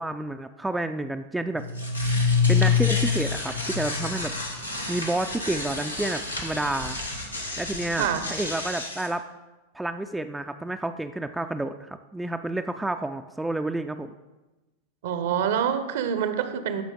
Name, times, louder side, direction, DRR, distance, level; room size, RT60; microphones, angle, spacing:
voice 1, 0.0-1.6 2.5-4.3 4.9-7.0 7.6-9.2 9.7-14.1, right 2 dB, 5° right, 7 dB, 0.3 m, -30 dB
sound 1, 1.5-9.1, left 5 dB, 90° left, 1.2 m, -27 dB
voice 2, 15.0-16.8, right 8 dB, 55° right, 10 dB, 0.7 m, -26 dB
13.5 x 5.1 x 3.7 m, 1.1 s
figure-of-eight pair, 90°, 0 cm